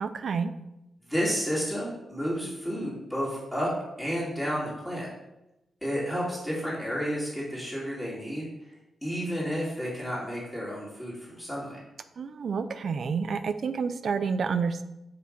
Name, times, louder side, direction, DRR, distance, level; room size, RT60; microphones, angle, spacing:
voice 1, 0.0-0.5 12.2-14.8, right 5 dB, 60° right, 11 dB, 0.4 m, -29 dB
voice 2, 1.1-3.7 4.0-5.1 5.8-8.5 9.0-11.8, equal, 5° left, -8 dB, 2.3 m, -31 dB
4.9 x 4.6 x 5.1 m, 0.93 s
wide cardioid pair, 130°, 0 cm